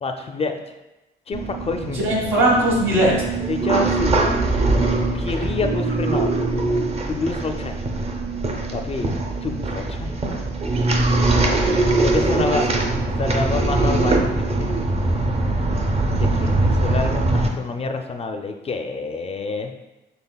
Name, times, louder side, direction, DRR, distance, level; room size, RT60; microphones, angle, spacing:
voice 1, 0.0-0.6 1.3-2.0 3.5-4.3 5.1-6.4 7.1-7.8 8.7-9.1 9.4-10.1 12.0-12.8 13.2-14.8 16.1-19.7, left 3 dB, 30° left, 5 dB, 0.4 m, -27 dB
sound 1, 1.3-17.5, right 2 dB, 30° right, 0.6 m, -22 dB
voice 2, 1.8-3.2 11.0-12.8, right 1 dB, 80° right, -4 dB, 1.5 m, -22 dB
5.8 x 3.3 x 2.3 m, 1.0 s
cardioid pair, 90°, 20 cm